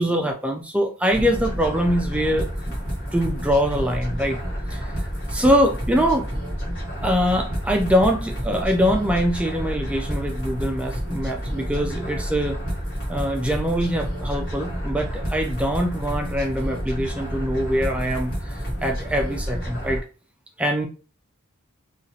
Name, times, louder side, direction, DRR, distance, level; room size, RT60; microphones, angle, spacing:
voice 1, 0.0-2.8 3.1-4.4 4.7-6.3 7.0-12.6 13.1-20.0 20.6-20.9, equal, 5° right, 3 dB, 0.3 m, -23 dB
sound 1, 1.1-20.0, equal, 55° left, 1.1 m, -29 dB
2.8 x 2.4 x 2.7 m, 0.35 s
head